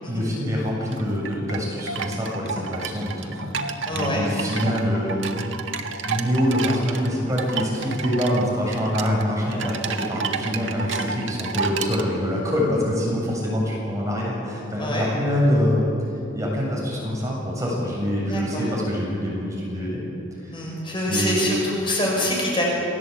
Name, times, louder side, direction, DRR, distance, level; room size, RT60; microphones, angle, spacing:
voice 1, 0.1-3.6 3.9-5.4 6.1-15.9 16.3-20.0 20.4-20.7 21.1-21.5, equal, 15° right, -3 dB, 7.5 m, -25 dB
sound 1, 0.6-12.0, right 5 dB, 65° right, 1.7 m, -31 dB
voice 2, 3.9-4.2 14.8-15.1 18.3-18.6 20.5-22.6, left 1 dB, 25° left, -3 dB, 6.4 m, -25 dB
28.5 x 19.5 x 8.6 m, 2.8 s
head